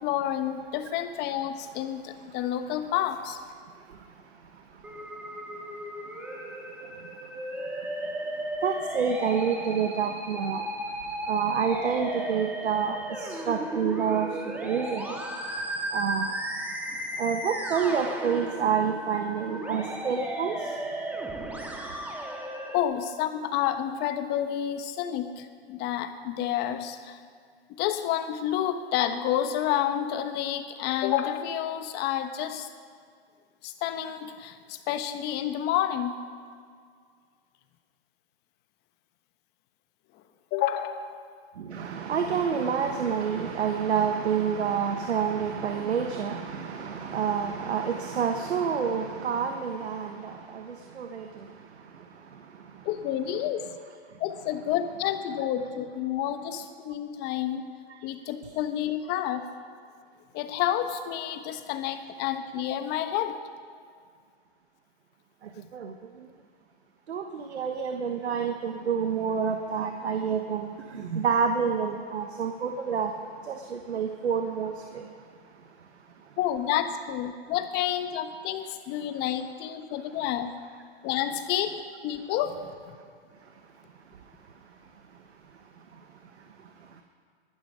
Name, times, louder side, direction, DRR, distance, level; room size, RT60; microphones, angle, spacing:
voice 1, 0.0-3.4 22.7-27.2 27.7-32.7 33.6-36.2 40.5-41.2 52.8-53.6 54.2-57.7 58.0-59.4 60.3-63.4 76.4-80.5 81.0-83.0, left 11 dB, 30° left, 9 dB, 1.1 m, -29 dB
Musical instrument, 4.8-22.8, right 1 dB, 5° right, 1.9 m, -35 dB
voice 2, 8.6-10.6 11.3-13.0 13.5-14.3 14.6-15.2 15.9-16.3 17.2-20.6 41.7-50.6 51.0-51.2 65.7-65.9 67.1-73.1 73.5-75.0, right 6 dB, 85° right, 5 dB, 1.3 m, -28 dB
20.0 x 11.5 x 5.0 m, 2.1 s
hypercardioid pair, 130°, 32 cm